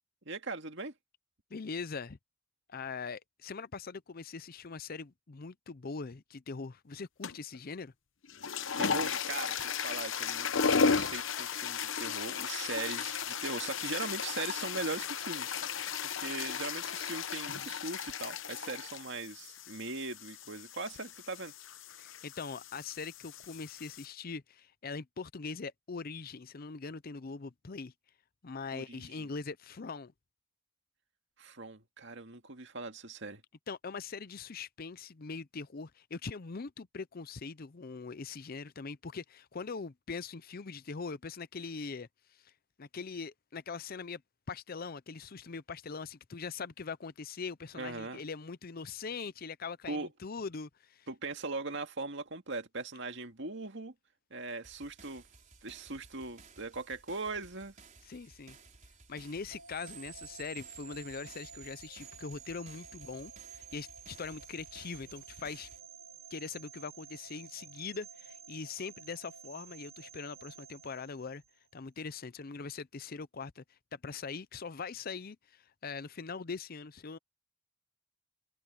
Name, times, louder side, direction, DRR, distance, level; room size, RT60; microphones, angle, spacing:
voice 1, 0.3-0.9 8.8-21.5 28.7-29.3 31.4-33.4 47.7-48.3 49.9-50.1 51.1-53.9 54.3-55.2 55.6-57.7, right 3 dB, 65° right, 2.1 m, -40 dB
voice 2, 1.5-2.2 2.7-7.9 22.0-27.9 28.4-30.1 33.7-42.1 42.4-42.5 42.8-44.2 44.5-51.1 58.1-58.6 59.1-65.7 66.3-71.4 71.7-73.6 73.9-77.2, left 4 dB, 50° left, 0.6 m, -42 dB
sound 1, 7.2-7.6 8.2-24.1, left 6 dB, 70° left, 1.0 m, -35 dB
sound 2, 54.6-65.8, right 4 dB, 40° right, 4.6 m, -57 dB
sound 3, 59.5-71.7, right 7 dB, 85° right, 1.1 m, -51 dB
head